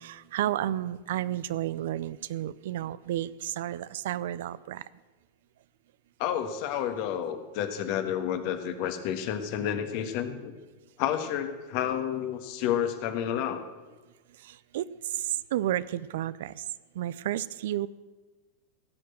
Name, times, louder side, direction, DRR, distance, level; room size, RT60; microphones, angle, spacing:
voice 1, 0.0-4.8 14.7-14.8 15.5-16.5 17.0-17.9, right 13 dB, 65° right, 18 dB, 0.4 m, -31 dB
voice 2, 6.2-10.5 11.0-13.6, left 9 dB, 50° left, 8 dB, 1.4 m, -30 dB
16.0 x 6.7 x 7.8 m, 1.3 s
figure-of-eight pair, 90°, 0 cm